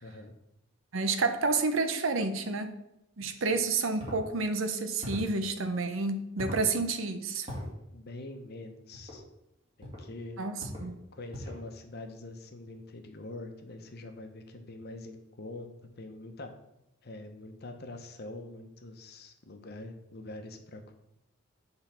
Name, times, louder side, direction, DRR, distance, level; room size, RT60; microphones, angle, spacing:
voice 1, 0.0-0.3 3.4-3.5 7.9-9.2 9.8-10.4 11.1-15.7 16.0-16.6 17.0-20.9, left 2 dB, 50° left, 6 dB, 0.9 m, -44 dB
voice 2, 0.9-2.7 3.2-7.5 10.4-10.9, right 3 dB, 70° right, 8 dB, 0.8 m, -30 dB
sound 1, 4.0-4.2 5.0-5.3 6.4-6.7 7.5-7.7 8.9-9.2 9.8-10.1 10.6-10.9 11.3-11.6, left 1 dB, 25° right, 2.5 m, -39 dB
8.0 x 3.9 x 5.8 m, 0.84 s
head